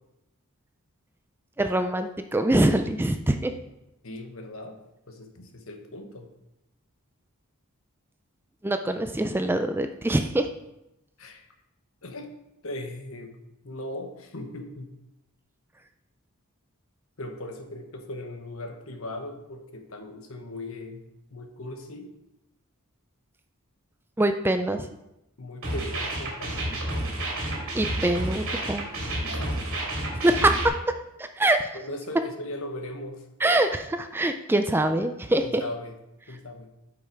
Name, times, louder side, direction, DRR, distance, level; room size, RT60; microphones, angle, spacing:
voice 1, 1.6-3.5 8.6-10.5 24.2-24.9 27.7-28.9 30.1-30.7 31.2-31.7 33.4-35.6, right 1 dB, 10° right, 7 dB, 0.3 m, -24 dB
voice 2, 4.0-4.8 5.1-6.3 11.2-11.5 12.0-12.3 12.6-13.3 13.6-15.0 17.2-22.1 25.4-26.9 29.2-29.6 31.7-33.3 35.4-35.9 36.3-36.7, left 1 dB, 65° left, 4 dB, 1.2 m, -38 dB
sound 1, 25.6-30.7, right 1 dB, 60° right, 2.9 m, -30 dB
8.7 x 5.5 x 4.6 m, 0.88 s
head